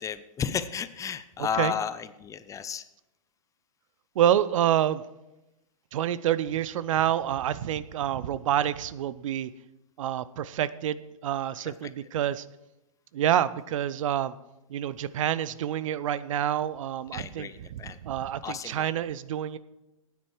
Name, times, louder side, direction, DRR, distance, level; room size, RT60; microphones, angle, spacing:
voice 1, 0.0-2.8 11.6-11.9 17.1-18.0 18.4-18.9, left 7 dB, 20° left, 13 dB, 0.6 m, -33 dB
voice 2, 4.2-5.0 5.9-9.5 10.0-12.4 13.1-14.3 14.7-19.6, right 11 dB, 65° right, 17 dB, 0.6 m, -27 dB
15.0 x 9.4 x 4.8 m, 0.95 s
hypercardioid pair, 120°, 18 cm